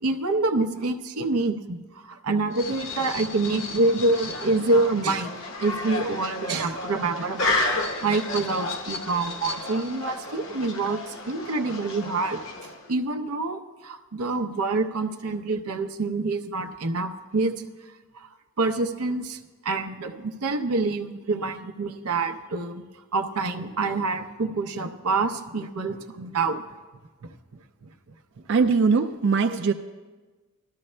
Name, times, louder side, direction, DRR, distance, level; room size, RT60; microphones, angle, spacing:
voice 1, 0.0-5.3 5.6-7.6 8.0-12.4 12.9-17.5 18.1-18.3 18.6-22.9 23.1-26.6, right 3 dB, 90° right, 5 dB, 0.7 m, -26 dB
sound 1, 2.5-12.9, left 2 dB, 60° left, 0.9 m, -32 dB
voice 2, 28.5-29.7, right 4 dB, 55° right, 5 dB, 0.4 m, -21 dB
19.0 x 13.0 x 2.2 m, 1.3 s
head